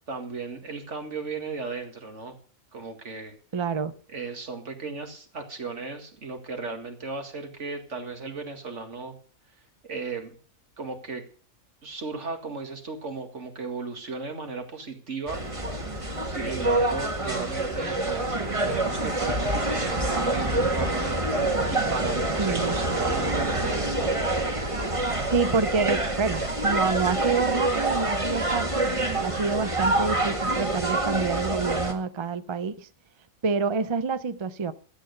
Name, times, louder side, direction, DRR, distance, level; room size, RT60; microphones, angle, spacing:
voice 1, 0.1-2.4 2.7-3.3 4.1-9.2 9.8-10.3 10.8-11.2 11.8-15.4 16.2-21.2 21.7-24.3, right 4 dB, 60° right, 2.3 m, -35 dB
voice 2, 3.5-3.9 22.4-22.8 25.3-28.9 29.2-32.9 33.4-34.7, right 5 dB, 45° right, 0.4 m, -27 dB
sound 1, 15.3-31.9, right 2 dB, 25° right, 1.7 m, -26 dB
12.5 x 8.8 x 6.7 m
omnidirectional pair, 1.4 m